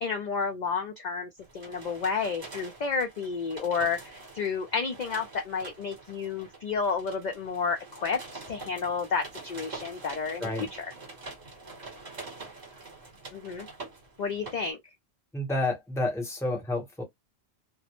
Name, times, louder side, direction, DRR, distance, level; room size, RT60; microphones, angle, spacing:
voice 1, 0.0-10.9 13.3-13.7 14.2-14.8, left 5 dB, 55° left, 0.5 m, -31 dB
sound 1, 1.4-14.7, right 3 dB, 45° right, 1.0 m, -45 dB
voice 2, 15.3-17.0, left 2 dB, 5° left, 0.7 m, -30 dB
2.1 x 2.0 x 2.8 m
omnidirectional pair, 1.1 m